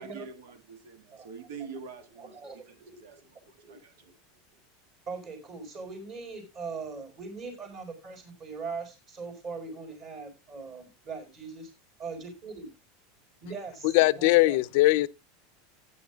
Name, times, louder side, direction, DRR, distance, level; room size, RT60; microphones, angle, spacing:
voice 1, 0.0-4.0, right 5 dB, 80° right, 1.7 m, -46 dB
voice 2, 2.2-3.1 3.6-4.1 5.1-11.7 12.0-12.7 13.4-14.8, right 4 dB, 35° right, 4.7 m, -41 dB
voice 3, 13.9-15.1, left 19 dB, 55° left, 0.5 m, -20 dB
16.5 x 9.6 x 2.3 m
supercardioid pair, 165°, 0 cm